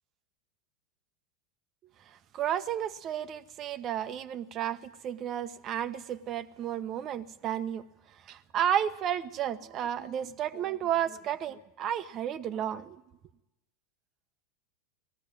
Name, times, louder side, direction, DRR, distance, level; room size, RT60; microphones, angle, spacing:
voice 1, 2.3-4.8 5.0-7.8 8.3-13.0, right 10 dB, 40° right, 12 dB, 1.0 m, -32 dB
19.5 x 15.0 x 9.0 m, 0.96 s
hypercardioid pair, 90°, 0 cm